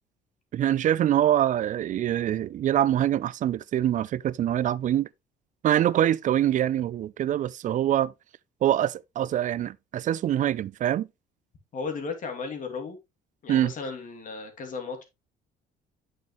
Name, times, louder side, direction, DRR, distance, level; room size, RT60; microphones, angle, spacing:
voice 1, 0.5-5.1 5.6-8.1 8.6-11.1 13.5-13.7, right 11 dB, 50° right, 0.5 m, -24 dB
voice 2, 11.7-13.0 13.4-15.0, left 4 dB, 50° left, 2.7 m, -35 dB
8.4 x 6.5 x 3.1 m
cardioid pair, 110°, 17 cm